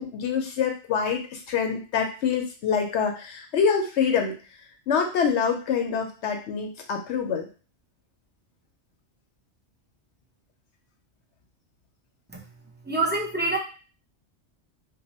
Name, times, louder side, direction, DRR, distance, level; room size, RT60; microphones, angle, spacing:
voice 1, 0.0-4.3 4.9-7.5, left 6 dB, 80° left, 3 dB, 0.9 m, -25 dB
voice 2, 12.9-13.6, right 3 dB, 15° right, -3 dB, 0.5 m, -25 dB
2.7 x 2.2 x 4.1 m, 0.36 s
omnidirectional pair, 1.2 m